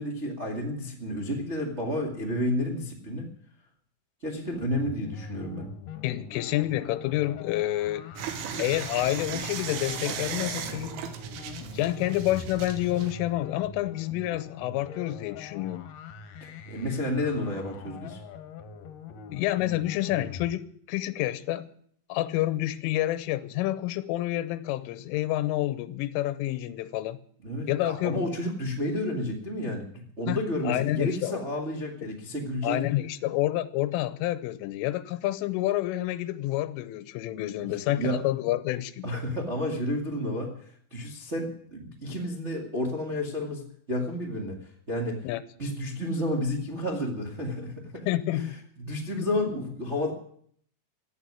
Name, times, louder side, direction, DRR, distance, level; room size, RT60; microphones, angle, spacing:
voice 1, 0.0-3.3 4.2-5.7 16.4-18.2 27.4-32.8 37.6-38.2 39.0-45.2 45.6-48.1 48.3-48.5 48.8-50.1, left 1 dB, 55° right, 0.7 m, -31 dB
sound 1, 4.5-20.5, left 6 dB, 65° left, 2.3 m, -43 dB
voice 2, 6.0-8.1 8.6-11.0 11.7-15.8 19.3-21.7 22.1-27.2 27.7-28.2 30.3-30.4 30.7-31.4 32.6-39.1 45.2-45.4 48.1-48.6 49.2-49.3, left 15 dB, 90° left, 3.3 m, -28 dB
sound 2, 8.2-13.1, right 9 dB, 80° right, 3.9 m, -36 dB
15.0 x 8.8 x 9.9 m
omnidirectional pair, 5.6 m